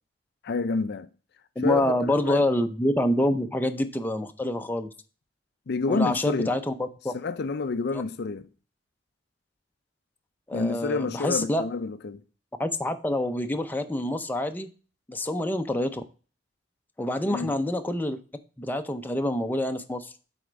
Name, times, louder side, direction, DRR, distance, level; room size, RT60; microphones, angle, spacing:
voice 1, 0.4-1.1 1.6-2.5 5.7-6.5 7.1-8.5 10.5-12.2 17.2-17.5, left 4 dB, 60° left, 0.5 m, -29 dB
voice 2, 1.6-4.9 5.9-7.1 10.5-11.6 12.6-14.7 15.1-16.0 17.0-18.2 18.6-20.1, left 1 dB, 10° left, 0.6 m, -27 dB
7.9 x 4.3 x 5.1 m
head